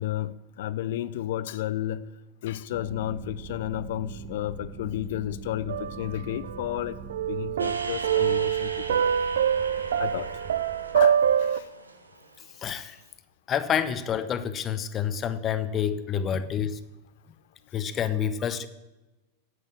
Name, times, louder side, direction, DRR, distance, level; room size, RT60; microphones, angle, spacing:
voice 1, 0.0-2.0 2.4-7.0 7.3-9.2 10.0-10.3 10.9-11.7 16.3-16.5, left 12 dB, 55° left, 16 dB, 0.6 m, -32 dB
sound 1, 2.7-11.4, right 5 dB, 25° right, 1.3 m, -43 dB
sound 2, 5.7-6.8 7.1-11.6, right 9 dB, 65° right, 0.4 m, -25 dB
sound 3, 7.6-13.0, right 3 dB, 80° right, 1.1 m, -41 dB
voice 2, 12.6-13.0 13.5-16.8 17.7-18.7, left 8 dB, 25° left, 12 dB, 0.9 m, -28 dB
10.5 x 8.2 x 7.6 m, 1.1 s
figure-of-eight pair, 90°, 0 cm